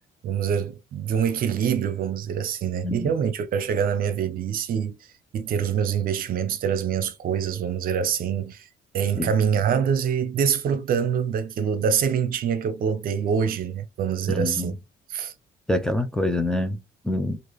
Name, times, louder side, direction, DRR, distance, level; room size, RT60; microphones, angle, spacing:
voice 1, 0.2-5.0 5.3-8.7 8.9-14.7 15.1-15.3, right 7 dB, 60° right, 0.8 m, -25 dB
voice 2, 2.8-3.2 9.2-9.3 14.3-14.8 15.7-17.4, left 1 dB, 5° left, 0.6 m, -26 dB
4.6 x 2.6 x 3.1 m
cardioid pair, 110°, 17 cm